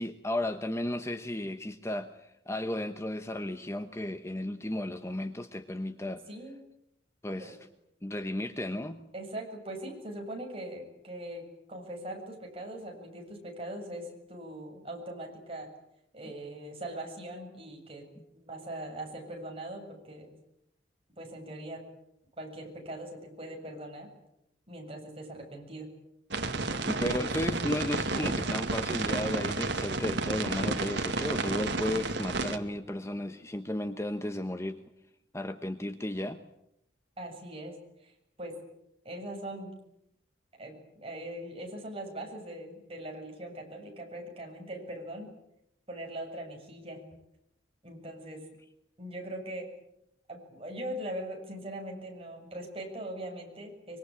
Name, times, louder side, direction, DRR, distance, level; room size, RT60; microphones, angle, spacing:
voice 1, 0.0-6.2 7.2-7.6 8.0-9.0 18.2-18.3 26.9-34.8 35.3-36.4, left 1 dB, 15° left, 8 dB, 1.0 m, -34 dB
voice 2, 6.3-6.6 7.4-7.5 9.1-15.7 16.1-18.1 18.3-20.3 21.2-21.8 22.4-24.1 24.7-25.9 26.7-27.3 37.2-37.8 38.0-38.1 38.4-38.6 39.0-39.7 40.6-45.3 45.9-47.0 47.8-48.5 49.0-49.7 50.3-54.0, right 1 dB, 30° right, 1 dB, 7.6 m, -41 dB
sound 1, 26.3-32.6, right 3 dB, 65° right, 2.1 m, -31 dB
25.5 x 24.0 x 8.9 m, 0.80 s
head